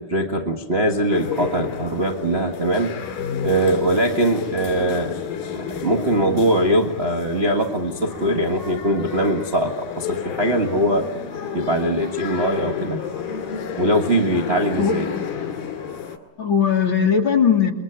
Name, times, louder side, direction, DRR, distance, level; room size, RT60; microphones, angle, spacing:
voice 1, 0.0-3.0 3.4-5.2 5.5-11.1 11.5-13.0 13.8-15.1, right 1 dB, 65° right, 3 dB, 0.6 m, -21 dB
sound 1, 1.1-16.2, left 7 dB, 75° left, 4.0 m, -31 dB
voice 2, 14.8-15.2 16.4-17.7, left 7 dB, 40° left, 3 dB, 1.9 m, -19 dB
28.5 x 23.0 x 8.9 m, 0.95 s
omnidirectional pair, 4.2 m